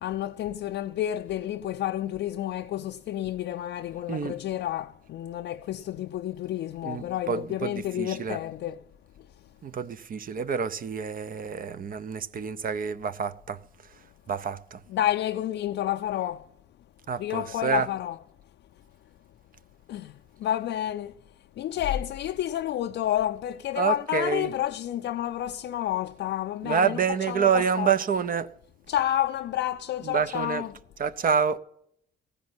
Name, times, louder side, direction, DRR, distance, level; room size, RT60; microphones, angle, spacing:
voice 1, 0.0-8.8 14.9-16.5 17.2-18.2 19.9-21.1 21.6-27.0 27.3-27.9 28.9-30.7, left 12 dB, 65° left, 0.4 m, -30 dB
voice 2, 6.8-8.4 9.6-13.6 14.3-14.8 17.1-17.9 23.8-24.5 26.6-28.5 30.0-30.7 31.0-31.6, right 6 dB, 45° right, 0.6 m, -27 dB
15.0 x 5.2 x 9.6 m
cardioid pair, 90°, 20 cm